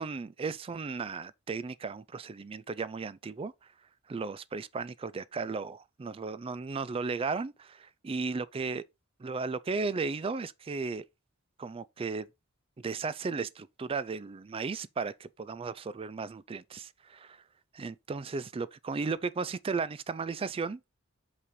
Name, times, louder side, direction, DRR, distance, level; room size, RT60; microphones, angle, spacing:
voice 1, 0.0-3.5 4.1-8.8 9.2-11.0 11.6-12.3 12.8-17.4 17.7-20.8, right 4 dB, 25° right, 0.3 m, -35 dB
8.3 x 3.3 x 5.2 m
head